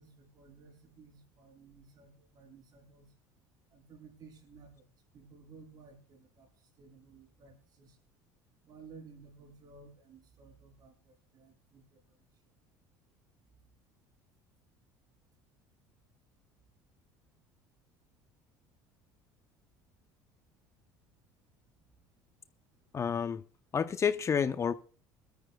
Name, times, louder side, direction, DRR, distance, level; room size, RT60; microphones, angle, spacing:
voice 1, 0.0-3.1 3.7-4.8 5.1-8.0 8.6-12.2, right 4 dB, 50° right, 6.4 m, -56 dB
voice 2, 22.9-23.4 23.7-24.7, left 7 dB, 35° left, 0.8 m, -29 dB
23.0 x 13.0 x 2.3 m
hypercardioid pair, 80°, 9 cm